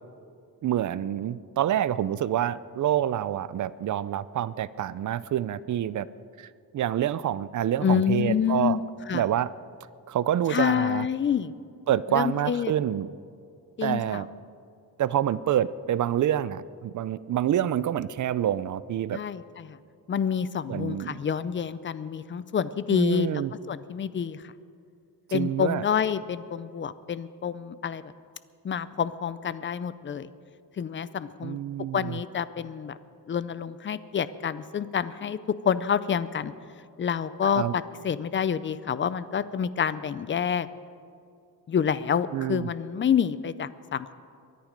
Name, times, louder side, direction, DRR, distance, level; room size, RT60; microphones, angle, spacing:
voice 1, 0.6-6.1 6.4-6.5 6.7-8.8 9.1-9.5 10.1-11.1 11.9-13.1 13.8-14.3 15.0-19.2 20.7-21.2 22.9-23.5 25.3-25.8 31.4-32.2 37.6-37.7 42.3-42.7, right 11 dB, 50° right, 17 dB, 0.4 m, -27 dB
voice 2, 7.8-8.8 9.1-9.3 10.5-11.5 12.1-12.7 13.8-14.3 19.1-19.8 20.1-24.5 25.3-28.1 28.6-30.3 30.8-31.6 31.9-33.0 33.3-36.5 37.0-40.7 41.7-44.1, left 7 dB, 30° left, 15 dB, 0.4 m, -28 dB
23.0 x 10.5 x 5.2 m, 2.5 s
wide cardioid pair, 155°, 39 cm